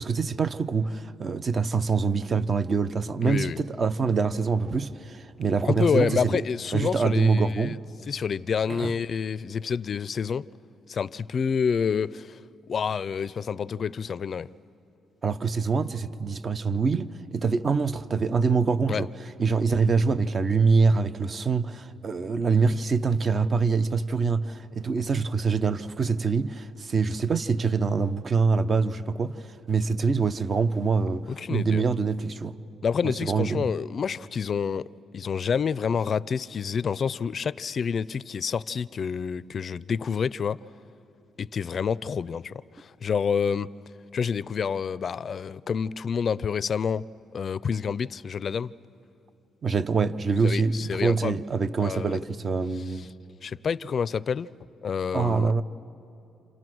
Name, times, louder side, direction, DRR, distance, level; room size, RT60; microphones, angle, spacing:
voice 1, 0.0-6.4 6.7-7.8 8.7-8.9 15.2-19.1 19.4-32.5 33.0-33.7 49.6-53.1 55.1-55.6, right 4 dB, 40° right, 0.8 m, -25 dB
voice 2, 3.2-3.6 5.6-7.8 8.1-10.5 10.9-12.4 12.7-14.5 18.9-19.0 31.4-31.8 32.8-34.9 35.1-40.6 41.4-43.7 44.1-47.0 47.3-48.7 50.4-51.4 51.8-52.2 53.4-54.5 54.8-55.5, left 6 dB, 50° left, 0.5 m, -28 dB
28.5 x 28.0 x 6.2 m
cardioid pair, 90°, 0 cm